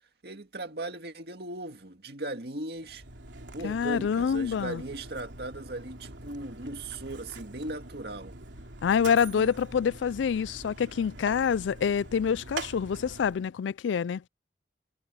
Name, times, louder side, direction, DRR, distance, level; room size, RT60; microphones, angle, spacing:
voice 1, 0.2-3.0 3.5-8.4 9.3-9.5, right 2 dB, 60° right, 2.1 m, -38 dB
Mechanisms, 2.7-13.5, right 3 dB, 90° right, 3.3 m, -44 dB
voice 2, 3.6-4.8 8.8-14.3, left 7 dB, 90° left, 0.3 m, -27 dB
head